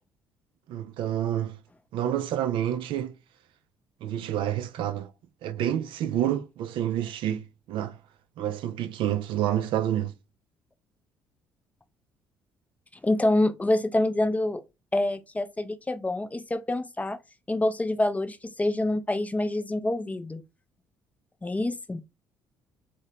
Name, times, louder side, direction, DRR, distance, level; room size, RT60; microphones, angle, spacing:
voice 1, 0.7-1.6 1.9-3.1 4.0-5.1 5.4-8.0 8.4-10.1, right 11 dB, 60° right, 0.3 m, -28 dB
voice 2, 13.0-14.6 14.9-17.2 17.5-20.4 21.4-22.0, left 1 dB, 15° left, 0.4 m, -26 dB
2.7 x 2.1 x 3.0 m
hypercardioid pair, 50°, 10 cm